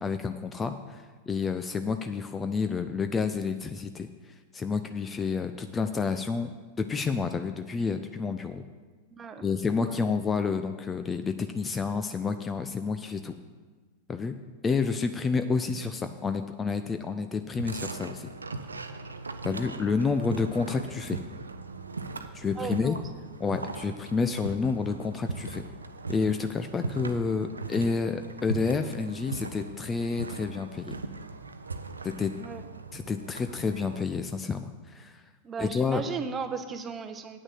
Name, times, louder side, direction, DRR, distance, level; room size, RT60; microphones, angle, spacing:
voice 1, 0.0-6.5 6.8-8.6 9.4-13.3 14.1-14.4 14.6-18.3 19.4-21.2 22.3-23.0 23.4-25.6 26.1-31.0 32.0-32.3 32.9-35.2 35.6-36.0, left 4 dB, 20° left, 8 dB, 0.5 m, -29 dB
voice 2, 9.1-9.4 9.8-10.0 22.6-23.0 32.4-32.6 35.4-37.4, right 5 dB, 20° right, 8 dB, 0.9 m, -36 dB
sound 1, 17.6-34.0, right 3 dB, 75° right, 0.6 m, -39 dB
8.9 x 6.2 x 7.8 m, 1.4 s
figure-of-eight pair, 90°, 0 cm